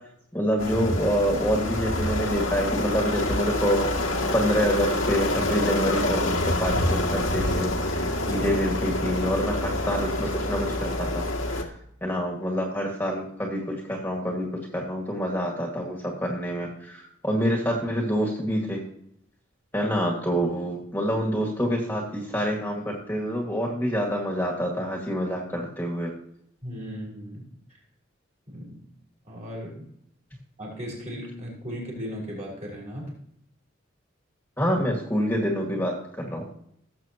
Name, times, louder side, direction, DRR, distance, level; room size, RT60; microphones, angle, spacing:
voice 1, 0.3-3.9 4.3-8.0 8.3-10.9 11.1-11.2 11.5-11.7 12.0-18.8 19.7-26.1 34.6-36.5, equal, 10° left, -1 dB, 2.0 m, -27 dB
sound 1, 0.6-11.6, left 1 dB, 85° left, 1.7 m, -27 dB
voice 2, 8.2-8.5 26.6-27.5 28.5-28.9 29.2-29.8 30.6-33.1, equal, 35° right, -3 dB, 5.1 m, -36 dB
18.0 x 7.9 x 3.0 m, 0.70 s
head